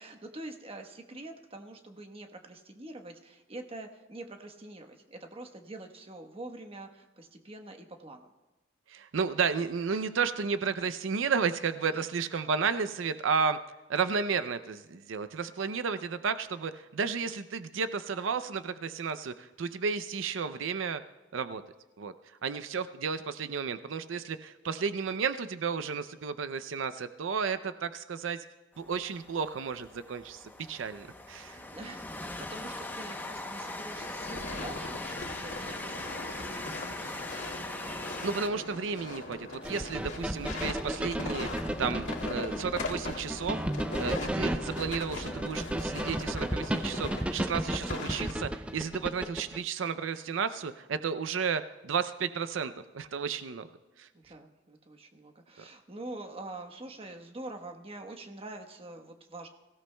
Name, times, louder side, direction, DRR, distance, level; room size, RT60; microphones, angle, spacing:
voice 1, 0.0-8.3 9.9-10.0 11.9-12.0 31.6-37.5 54.1-59.5, right 2 dB, 30° right, 5 dB, 1.1 m, -45 dB
voice 2, 8.9-13.6 13.9-21.0 21.3-21.6 22.0-28.4 28.8-31.6 38.2-43.6 44.0-53.7 54.0-54.1, right 5 dB, 90° right, 11 dB, 0.5 m, -32 dB
Train, 28.7-38.5, left 2 dB, 10° left, 0.8 m, -40 dB
sound 1, 34.0-48.3, left 2 dB, 75° left, 2.1 m, -40 dB
sound 2, 39.6-49.6, right 1 dB, 5° right, 0.3 m, -34 dB
23.0 x 16.5 x 2.2 m, 1.1 s
head